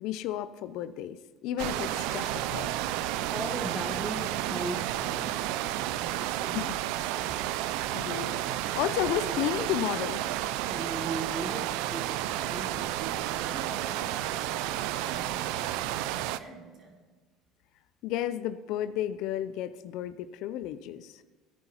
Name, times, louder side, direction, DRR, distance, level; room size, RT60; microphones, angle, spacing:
voice 1, 0.0-2.7 6.5-6.6 7.9-8.4 8.7-10.2 18.0-21.2, left 12 dB, 65° left, 14 dB, 0.5 m, -32 dB
sound 1, 1.6-16.4, right 13 dB, 70° right, 0.3 m, -31 dB
voice 2, 3.3-5.4 10.7-13.4, right 2 dB, 15° right, 3 dB, 1.5 m, -37 dB
voice 3, 5.7-6.9 13.4-17.0, right 3 dB, 55° right, -2 dB, 3.6 m, -48 dB
17.0 x 10.5 x 3.0 m, 1.4 s
hypercardioid pair, 70°, 0 cm